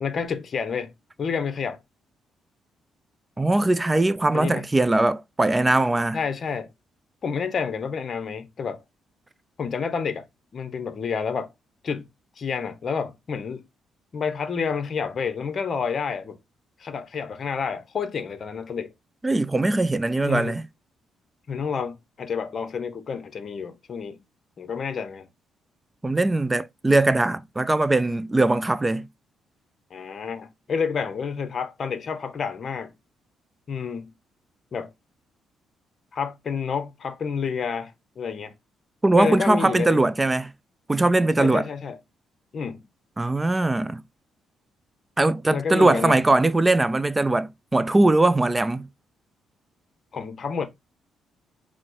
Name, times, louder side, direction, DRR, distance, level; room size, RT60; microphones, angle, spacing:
voice 1, 0.0-0.9 1.2-1.8 4.3-4.7 6.1-6.7 7.2-8.8 9.6-10.3 10.5-11.5 11.8-12.1 12.4-13.7 14.1-16.4 16.8-18.9 20.2-20.6 21.5-24.2 24.6-25.3 29.9-32.9 33.7-34.1 34.7-34.9 36.1-38.5 39.1-40.1 41.4-42.0 42.5-42.8 45.5-46.2 50.1-50.7, left 6 dB, 50° left, 0.8 m, -29 dB
voice 2, 3.4-6.2 19.2-20.6 26.0-29.1 39.0-40.5 40.9-41.7 43.2-44.0 45.2-48.9, right 2 dB, 15° right, 0.3 m, -21 dB
4.3 x 2.1 x 4.6 m
cardioid pair, 90°, 0 cm